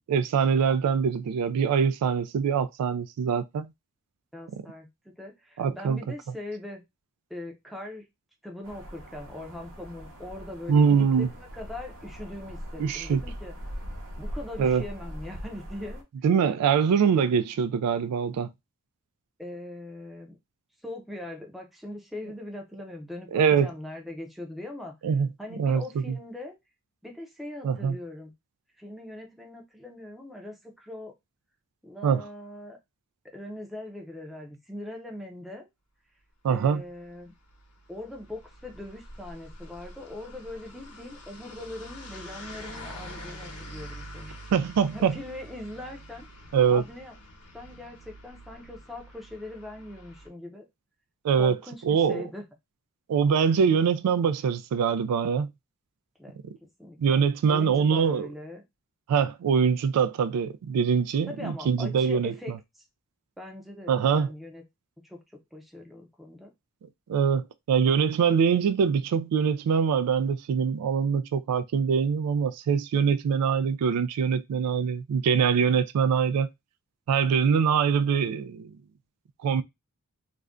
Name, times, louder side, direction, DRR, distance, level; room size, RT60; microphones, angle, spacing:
voice 1, 0.1-3.7 5.6-6.0 10.7-11.3 12.8-13.2 14.6-14.8 16.2-18.5 23.3-23.7 25.0-25.3 25.6-26.2 27.6-28.0 32.0-32.2 36.4-36.8 44.5-45.2 46.5-46.8 51.2-51.6 51.8-52.3 53.1-55.5 57.0-58.3 59.1-62.6 63.9-64.3 67.1-76.5 77.1-78.7 79.4-79.6, right 6 dB, 90° right, 0.3 m, -23 dB
voice 2, 4.3-6.8 7.3-8.1 8.4-13.5 14.2-16.0 19.4-20.4 20.8-24.9 25.4-26.6 27.0-28.3 28.8-31.1 31.8-32.8 33.3-35.7 36.5-37.3 37.9-44.4 44.9-46.3 46.7-47.2 47.5-50.6 51.3-52.4 56.2-56.4 56.8-57.2 57.5-58.6 61.2-62.5 63.4-64.6 65.0-65.2 65.5-66.5, left 1 dB, ahead, 0.5 m, -41 dB
sound 1, 8.6-16.0, equal, 65° right, 0.8 m, -41 dB
sound 2, 37.1-50.3, equal, 90° left, 0.9 m, -45 dB
2.5 x 2.2 x 3.5 m
head